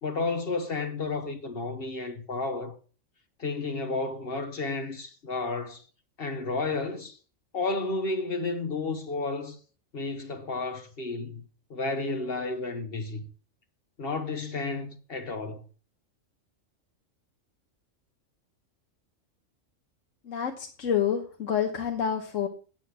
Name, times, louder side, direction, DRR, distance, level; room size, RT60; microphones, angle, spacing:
voice 1, 0.0-2.7 3.4-5.8 6.2-7.2 7.5-9.6 9.9-11.4 11.7-13.2 14.0-15.6, left 3 dB, 50° left, 1.3 m, -32 dB
voice 2, 20.2-22.5, left 8 dB, 80° left, 1.4 m, -28 dB
9.0 x 8.2 x 5.9 m
omnidirectional pair, 1.3 m